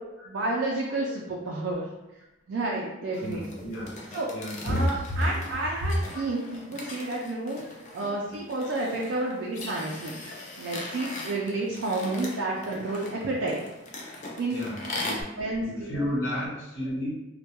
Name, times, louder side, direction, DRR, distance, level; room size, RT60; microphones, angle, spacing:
voice 1, 0.3-1.8 2.5-3.4 4.1-4.3 4.6-7.6 7.9-10.2 10.6-13.6 14.4-14.6 15.1-15.6, right 2 dB, 70° right, -3 dB, 0.4 m, -30 dB
voice 2, 3.1-4.0 4.3-4.8 5.1-5.4 5.7-6.2 8.0-8.1 14.5-15.3 15.6-17.2, equal, 85° left, -6 dB, 0.9 m, -31 dB
sound 1, 3.1-15.2, left 2 dB, 40° left, 0.4 m, -40 dB
2.2 x 2.1 x 2.8 m, 0.98 s
head